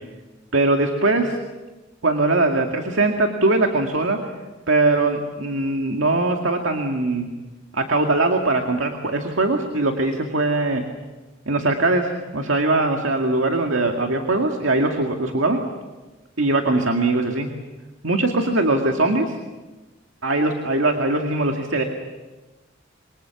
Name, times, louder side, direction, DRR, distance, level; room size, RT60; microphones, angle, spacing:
voice 1, 0.5-1.4 2.0-4.2 4.7-7.3 7.7-10.8 11.5-15.6 16.4-17.5 18.0-19.4 20.2-21.8, right 2 dB, 70° right, 3 dB, 2.2 m, -21 dB
27.5 x 24.5 x 7.1 m, 1.2 s
head